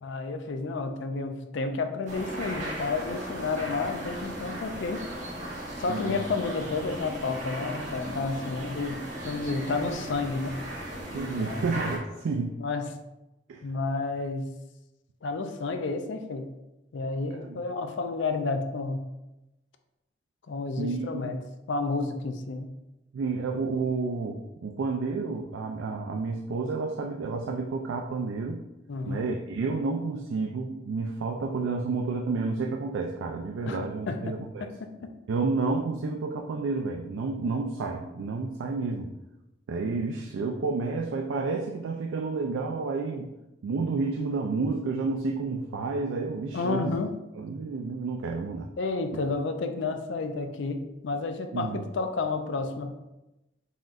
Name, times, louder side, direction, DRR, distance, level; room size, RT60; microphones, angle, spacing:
voice 1, 0.0-5.0 5.8-9.0 9.2-10.6 11.4-11.6 12.6-12.9 13.6-14.5 15.2-16.5 16.9-19.0 20.5-21.4 21.7-22.7 28.9-29.2 33.7-33.8 34.1-35.1 46.5-47.1 48.8-53.0, left 3 dB, 70° left, 7 dB, 0.4 m, -31 dB
sound 1, 2.1-12.0, right 1 dB, 40° right, 0.9 m, -37 dB
voice 2, 5.9-6.2 9.5-10.0 11.1-12.5 13.5-13.6 17.4-17.6 20.8-21.4 23.1-28.6 29.0-34.7 35.3-39.1 39.7-43.3 43.6-46.9 47.4-48.7 51.5-51.8, right 4 dB, 80° right, 2 dB, 0.3 m, -30 dB
4.1 x 3.7 x 2.4 m, 0.96 s
head